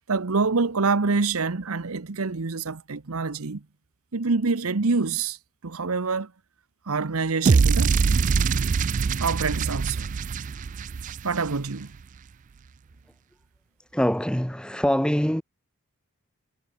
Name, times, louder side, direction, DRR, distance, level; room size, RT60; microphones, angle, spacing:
voice 1, 0.1-3.6 4.1-5.4 5.6-6.3 6.9-8.0 9.2-10.1 11.2-11.9, right 4 dB, 80° right, 1.0 m, -26 dB
sound 1, 7.4-11.7, right 5 dB, 35° right, 0.3 m, -23 dB
voice 2, 13.9-15.4, equal, 5° left, 1.9 m, -24 dB
head